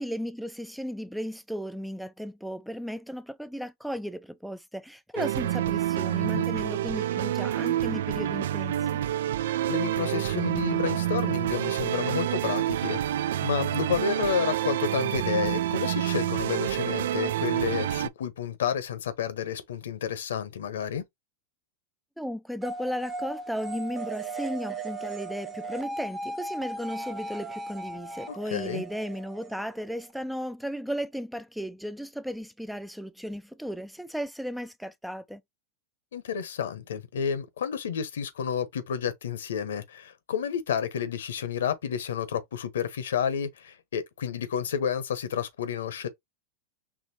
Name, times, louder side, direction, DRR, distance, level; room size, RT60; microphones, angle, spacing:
voice 1, 0.0-9.0 22.2-35.4, equal, ahead, 0.4 m, -35 dB
sound 1, 5.2-18.1, right 12 dB, 75° right, 0.3 m, -28 dB
voice 2, 9.7-21.1 28.3-28.8 36.1-46.1, left 8 dB, 80° left, 1.0 m, -30 dB
sound 2, 22.6-30.1, right 2 dB, 20° right, 1.0 m, -37 dB
4.9 x 3.0 x 2.8 m
hypercardioid pair, 110°, 0 cm